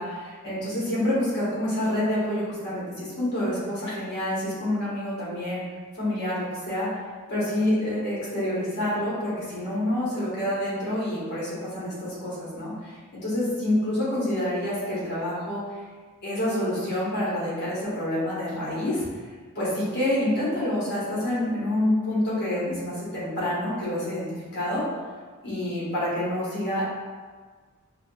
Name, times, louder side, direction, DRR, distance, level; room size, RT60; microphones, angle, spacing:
voice 1, 0.0-5.6 5.9-6.9 7.3-15.6 16.2-19.0 19.5-24.3 24.5-24.8 25.4-26.9, left 1 dB, 55° left, -8 dB, 1.5 m, -27 dB
4.8 x 2.3 x 2.5 m, 1.5 s
head